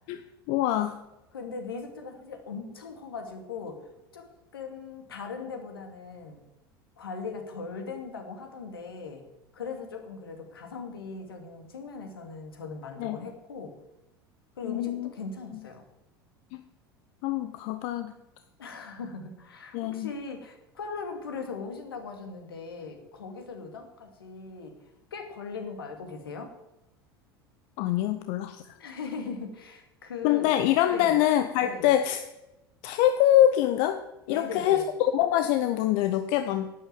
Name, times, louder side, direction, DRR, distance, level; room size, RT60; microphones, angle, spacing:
voice 1, 0.5-1.0 13.0-13.2 14.6-15.1 16.5-16.6 17.2-18.1 19.7-20.1 27.8-28.6 30.2-32.2 32.8-34.0 34.3-36.7, left 12 dB, 50° left, 9 dB, 0.8 m, -24 dB
voice 2, 1.3-4.2 4.5-6.4 7.0-9.2 9.5-13.7 14.6-15.8 18.6-24.8 25.1-26.5 28.8-30.5 30.9-31.1 31.6-31.9 34.3-34.9, left 4 dB, 70° left, 4 dB, 2.4 m, -39 dB
11.5 x 9.1 x 7.6 m, 0.92 s
figure-of-eight pair, 75°, 13 cm